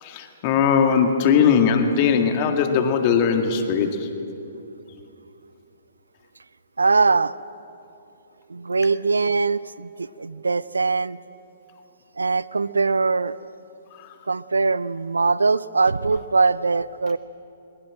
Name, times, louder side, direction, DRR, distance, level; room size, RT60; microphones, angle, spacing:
voice 1, 0.0-4.1, left 6 dB, 35° left, 6 dB, 2.0 m, -19 dB
voice 2, 6.8-7.4 8.5-11.2 12.2-13.4 14.3-17.2, right 4 dB, 75° right, 18 dB, 0.5 m, -21 dB
21.5 x 20.5 x 7.7 m, 2.8 s
figure-of-eight pair, 120°, 0 cm